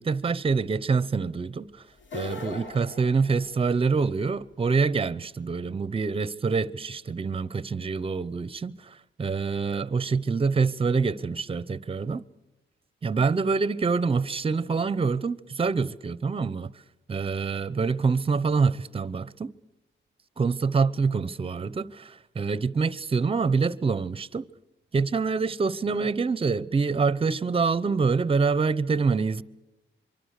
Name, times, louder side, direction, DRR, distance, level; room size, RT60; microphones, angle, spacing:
voice 1, 0.0-1.8 2.1-12.2 13.0-16.7 17.1-19.5 20.4-24.5 24.9-29.4, right 4 dB, 25° right, 0.8 m, -26 dB
sound 1, 2.0-4.0, left 3 dB, 70° left, 3.1 m, -40 dB
24.5 x 24.0 x 6.6 m
wide cardioid pair, 140°, 20 cm